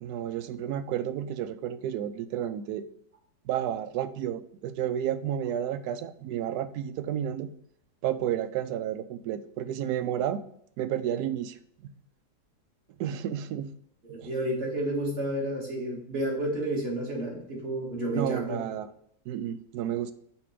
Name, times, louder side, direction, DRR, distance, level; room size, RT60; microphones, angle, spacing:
voice 1, 0.0-2.9 3.4-7.5 8.0-10.4 10.8-11.6 11.8-11.9 13.0-13.7 14.2-14.3 18.1-18.9 19.3-20.1, right 10 dB, 75° right, 10 dB, 1.0 m, -31 dB
voice 2, 14.0-18.8, right 1 dB, 35° right, -4 dB, 2.2 m, -31 dB
5.8 x 4.4 x 4.9 m, 0.68 s
omnidirectional pair, 1.8 m